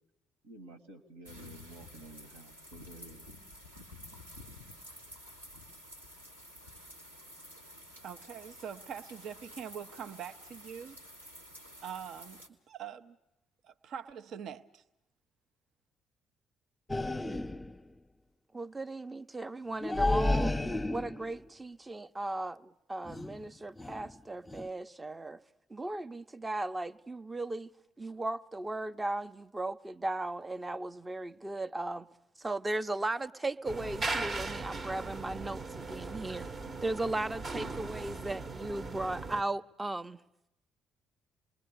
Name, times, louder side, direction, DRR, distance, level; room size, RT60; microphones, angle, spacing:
voice 1, 0.4-3.3, right 2 dB, 70° right, 10 dB, 1.9 m, -51 dB
sound 1, 1.2-12.5, left 1 dB, 90° right, 1.8 m, -51 dB
voice 2, 8.0-11.0 11.8-13.2 13.6-14.8, right 8 dB, 55° right, 11 dB, 0.8 m, -43 dB
sound 2, 16.9-17.8 19.8-21.4 23.1-23.4 23.8-24.1 24.5-24.7, left 2 dB, 10° left, 0.8 m, -31 dB
voice 3, 18.5-20.6 20.9-25.4 25.7-27.7 28.0-32.1 32.4-36.5 36.8-40.2, right 2 dB, 20° right, 12 dB, 0.8 m, -37 dB
sound 3, 33.7-39.4, right 3 dB, 40° right, 1.1 m, -38 dB
28.0 x 21.5 x 6.7 m, 0.87 s
figure-of-eight pair, 45°, 0 cm